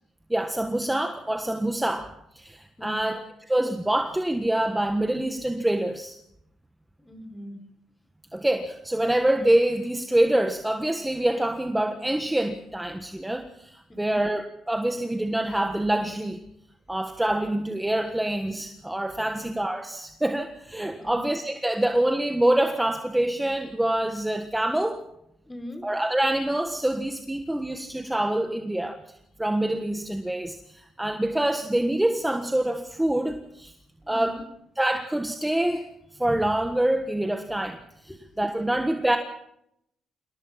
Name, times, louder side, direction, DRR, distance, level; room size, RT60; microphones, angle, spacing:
voice 1, 0.3-6.1 8.3-16.4 16.9-25.0 25.8-29.0 29.4-33.7 34.1-34.4 34.8-35.9 36.1-37.8 38.4-39.2, right 1 dB, 10° right, 6 dB, 1.5 m, -26 dB
voice 2, 2.8-3.1 7.0-7.6 14.0-14.2 19.3-19.5 21.0-21.3 25.5-25.8 34.0-34.4 38.1-38.4, left 1 dB, 15° left, 7 dB, 4.6 m, -41 dB
27.0 x 18.0 x 5.9 m, 0.77 s
cardioid pair, 90°, 0 cm